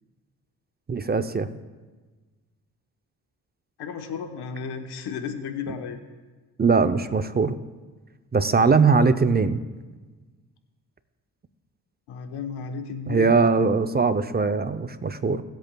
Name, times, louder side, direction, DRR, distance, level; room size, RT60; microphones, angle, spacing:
voice 1, 0.9-1.5 6.6-7.6 8.3-9.6 13.1-15.4, right 4 dB, 25° right, 11 dB, 0.6 m, -21 dB
voice 2, 3.8-6.0 12.1-13.4, left 6 dB, 85° left, 7 dB, 1.1 m, -33 dB
23.0 x 8.1 x 2.3 m, 1.3 s
cardioid pair, 70°, 39 cm